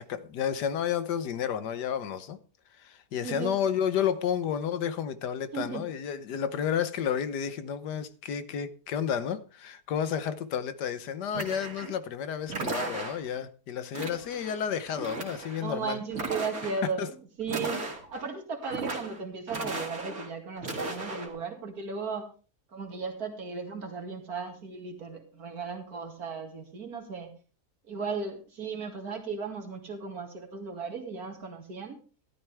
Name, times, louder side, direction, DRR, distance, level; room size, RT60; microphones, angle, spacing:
voice 1, 0.0-2.4 2.8-16.0 17.0-17.1, left 8 dB, 85° left, 1.6 m, -31 dB
voice 2, 3.2-3.6 5.5-5.8 15.6-22.3 22.7-27.3 27.9-32.0, right 5 dB, 65° right, 2.7 m, -36 dB
sound 1, 11.3-12.0 12.5-13.4 13.9-14.6 14.9-15.6 16.1-16.9 17.4-18.3 18.6-19.2 19.5-20.3 20.6-21.3, right 3 dB, 45° right, 2.8 m, -36 dB
13.5 x 12.5 x 3.4 m
omnidirectional pair, 1.7 m